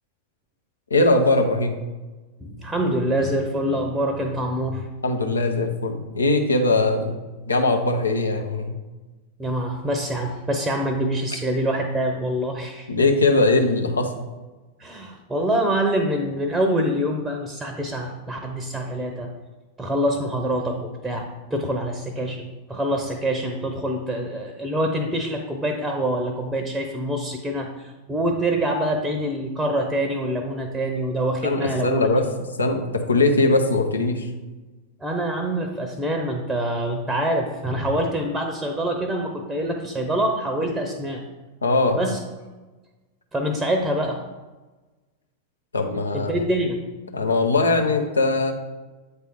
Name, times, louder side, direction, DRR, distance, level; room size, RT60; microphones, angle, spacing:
voice 1, 0.9-1.7 5.0-8.8 12.9-14.1 31.4-32.2 32.6-34.3 41.6-42.0 45.7-46.3 47.1-48.5, left 2 dB, 75° left, 4 dB, 0.8 m, -20 dB
voice 2, 2.4-4.9 9.4-12.9 14.8-19.3 19.8-32.1 35.0-41.2 42.0-42.2 43.3-44.2 46.1-46.8, right 1 dB, 10° right, 3 dB, 0.8 m, -25 dB
8.2 x 3.4 x 4.6 m, 1.2 s
figure-of-eight pair, 90°, 0 cm